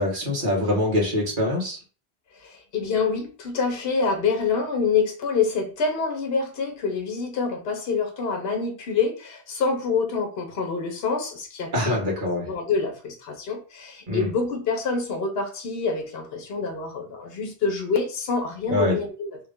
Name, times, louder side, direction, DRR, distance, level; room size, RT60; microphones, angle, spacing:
voice 1, 0.0-1.8 11.7-12.5 14.1-14.3 18.7-18.9, left 1 dB, 50° right, 1.5 m, -24 dB
voice 2, 2.3-12.0 12.5-19.4, left 5 dB, 70° left, 1.0 m, -26 dB
3.2 x 2.5 x 3.5 m
omnidirectional pair, 1.1 m